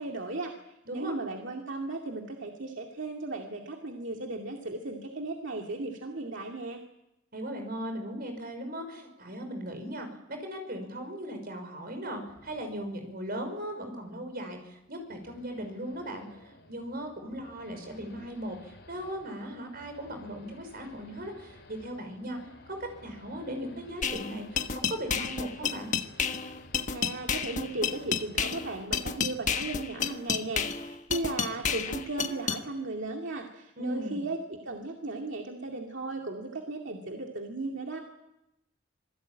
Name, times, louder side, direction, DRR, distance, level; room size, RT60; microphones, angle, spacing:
voice 1, 0.0-6.8 26.9-38.0, right 2 dB, 70° right, 1 dB, 2.4 m, -36 dB
voice 2, 7.3-22.4 23.0-25.9 33.8-34.2, equal, 50° right, 6 dB, 5.7 m, -38 dB
Race car auto racing / Idling / Accelerating revving vroom, 12.3-28.9, left 1 dB, 65° left, 4.7 m, -54 dB
sound 1, 24.0-32.6, left 6 dB, 40° left, 1.2 m, -31 dB
26.5 x 18.5 x 8.9 m, 0.91 s
head